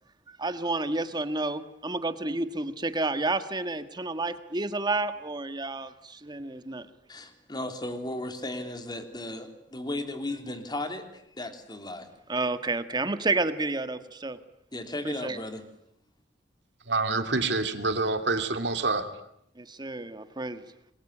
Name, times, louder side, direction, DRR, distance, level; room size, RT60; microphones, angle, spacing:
voice 1, 0.4-6.9 12.3-14.4 15.1-15.4 19.6-20.6, right 2 dB, 25° right, 10 dB, 1.7 m, -30 dB
voice 2, 7.1-12.1 14.7-15.6, left 1 dB, 25° left, 7 dB, 3.3 m, -35 dB
voice 3, 16.9-19.0, right 3 dB, 70° right, 7 dB, 2.8 m, -27 dB
27.0 x 22.0 x 10.0 m, 0.76 s
head